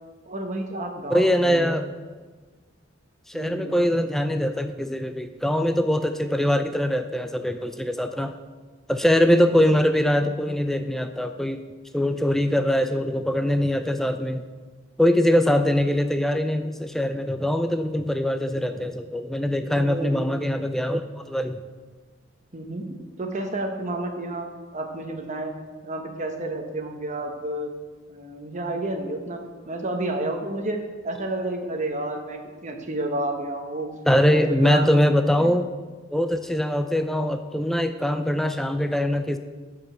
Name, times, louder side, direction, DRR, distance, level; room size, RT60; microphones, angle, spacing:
voice 1, 0.3-1.7 3.3-3.8 9.3-9.6 19.7-20.2 22.5-24.5 24.7-25.5 25.8-27.7 28.1-33.9 34.3-34.9 35.4-35.5, right 1 dB, 40° right, 4 dB, 1.1 m, -31 dB
voice 2, 1.1-1.9 3.3-8.4 8.9-11.6 11.9-14.4 15.0-21.6 34.1-35.7 36.1-39.4, equal, ahead, 8 dB, 0.3 m, -22 dB
10.5 x 5.0 x 6.8 m, 1.4 s
head